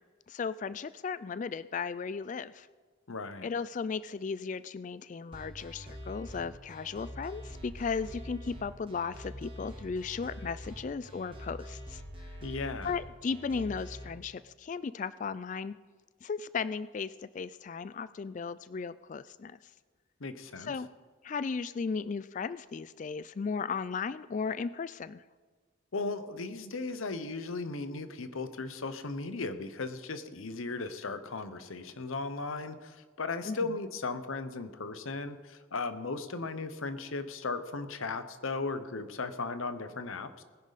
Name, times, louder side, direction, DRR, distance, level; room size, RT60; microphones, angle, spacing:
voice 1, 0.3-2.7 3.4-12.3 12.8-15.8 16.2-19.6 20.6-20.9 21.2-25.2 33.5-33.6, left 5 dB, 35° left, 16 dB, 0.3 m, -36 dB
voice 2, 3.1-3.5 12.4-12.9 20.2-20.7 25.9-40.4, left 3 dB, 80° left, 11 dB, 0.9 m, -36 dB
sound 1, 5.3-14.0, equal, 25° right, 2.0 m, -45 dB
20.0 x 10.5 x 4.1 m, 1.4 s
head